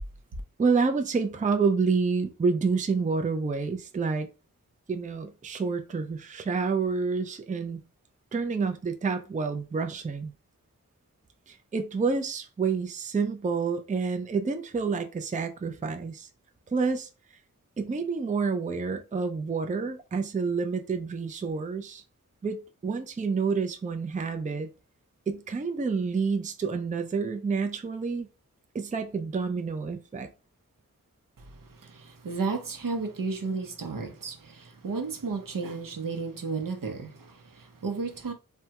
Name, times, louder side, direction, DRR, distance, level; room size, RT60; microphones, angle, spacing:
voice 1, 0.6-4.3 4.9-7.8 8.3-10.3 11.5-16.3 16.7-17.1 17.8-22.0 22.4-24.7 25.3-28.3 28.7-30.3, right 4 dB, 25° right, 0.4 m, -28 dB
voice 2, 31.4-38.3, right 4 dB, 75° right, 0.7 m, -33 dB
3.4 x 2.2 x 2.8 m
wide cardioid pair, 65°, 33 cm